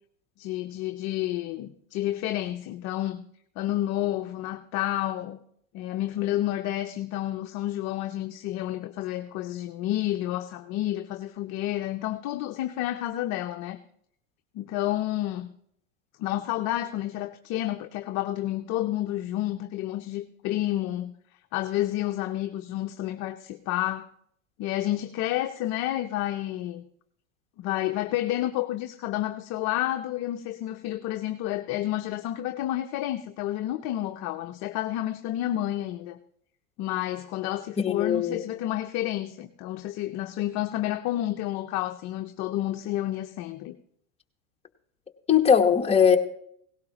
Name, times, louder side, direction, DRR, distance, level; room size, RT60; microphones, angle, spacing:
voice 1, 0.4-3.2 3.6-5.4 5.7-13.8 14.5-15.5 16.2-21.1 21.5-24.1 24.6-26.8 27.6-36.2 36.8-43.8, left 14 dB, 40° left, 0.6 m, -30 dB
voice 2, 37.8-38.4 45.3-46.2, left 7 dB, 15° left, 1.2 m, -20 dB
17.5 x 16.5 x 3.0 m
hypercardioid pair, 110°, 41 cm